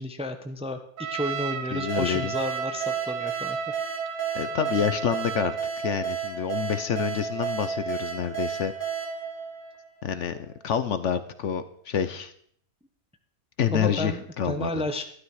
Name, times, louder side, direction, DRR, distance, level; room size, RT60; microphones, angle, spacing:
voice 1, 0.0-3.6 13.7-15.0, left 1 dB, 5° right, 6 dB, 0.7 m, -32 dB
Trumpet, 1.0-5.7, right 9 dB, 70° right, 1.1 m, -35 dB
voice 2, 1.7-2.3 4.3-8.7 10.0-10.4 10.6-12.3 13.6-14.8, left 8 dB, 60° left, 12 dB, 1.0 m, -28 dB
sound 1, 1.9-10.3, right 6 dB, 35° right, 3.6 m, -32 dB
12.5 x 11.5 x 4.8 m, 0.63 s
omnidirectional pair, 1.5 m